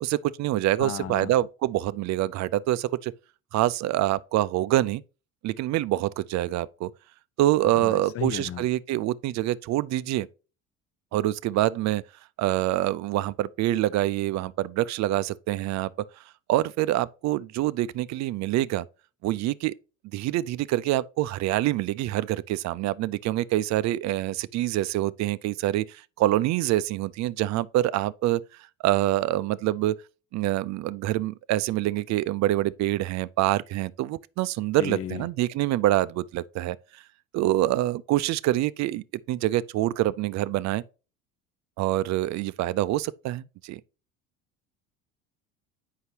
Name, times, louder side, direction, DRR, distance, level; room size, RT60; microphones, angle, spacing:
voice 1, 0.0-3.1 3.5-5.0 5.4-6.9 7.4-10.3 11.1-12.0 12.4-15.9 16.5-18.9 19.2-19.8 20.1-28.4 28.8-30.0 30.3-37.0 37.3-40.8 41.8-43.8, right 15 dB, 50° right, 0.5 m, -26 dB
voice 2, 0.8-1.3 7.6-8.7 34.8-35.3, left 9 dB, 40° left, 0.7 m, -34 dB
7.9 x 5.6 x 2.8 m
supercardioid pair, 80°, 35 cm